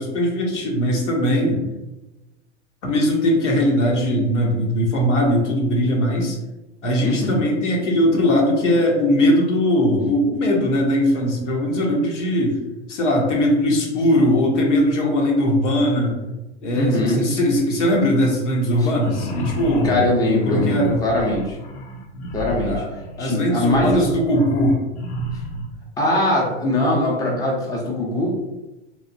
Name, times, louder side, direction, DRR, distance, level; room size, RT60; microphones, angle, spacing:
voice 1, 0.0-1.6 2.8-6.4 6.8-12.6 12.9-16.2 16.6-21.0 22.7-22.9 23.2-24.8, left 1 dB, 80° left, 0 dB, 0.9 m, -20 dB
voice 2, 7.0-7.4 16.7-17.2 18.8-18.9 19.8-21.6 22.3-22.8 23.2-24.1 26.0-28.3, left 1 dB, 10° left, -3 dB, 0.6 m, -21 dB
sound 1, 18.9-25.7, right 1 dB, 55° left, 0.6 m, -31 dB
3.1 x 2.1 x 2.6 m, 1.0 s
hypercardioid pair, 105°, 35 cm